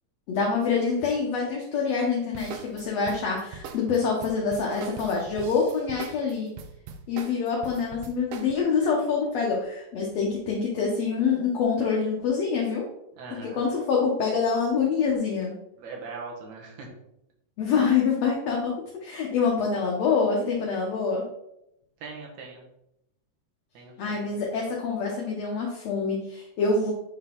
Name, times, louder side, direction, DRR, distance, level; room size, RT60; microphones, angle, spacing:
voice 1, 0.3-6.5 7.1-12.9 13.4-15.5 17.6-18.7 19.0-21.2 24.0-26.9, left 5 dB, 65° left, -2 dB, 1.9 m, -26 dB
sound 1, 2.3-8.5, right 6 dB, 90° right, 1.4 m, -41 dB
voice 2, 13.1-13.6 15.8-16.9 22.0-22.7 23.7-24.2, right 4 dB, 70° right, -1 dB, 2.7 m, -40 dB
8.8 x 3.9 x 3.7 m, 0.82 s
omnidirectional pair, 3.5 m